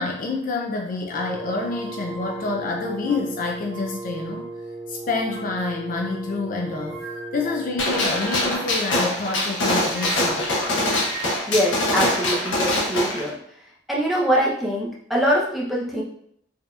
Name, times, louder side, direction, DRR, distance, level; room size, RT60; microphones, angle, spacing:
voice 1, 0.0-4.5 4.9-7.0 7.3-10.4, left 3 dB, 40° left, 1 dB, 0.4 m, -28 dB
Wind instrument woodwind instrument, 1.1-7.9, right 2 dB, 50° right, 0.4 m, -36 dB
sound 1, 1.3-4.6 5.0-8.7 9.5-12.6, right 5 dB, 85° right, 0.8 m, -41 dB
Gunshot gunfire, 7.8-13.2, left 1 dB, 75° left, 1.1 m, -23 dB
voice 2, 11.5-13.4 13.9-16.0, equal, ahead, -5 dB, 0.7 m, -23 dB
4.6 x 2.7 x 2.3 m, 0.69 s
head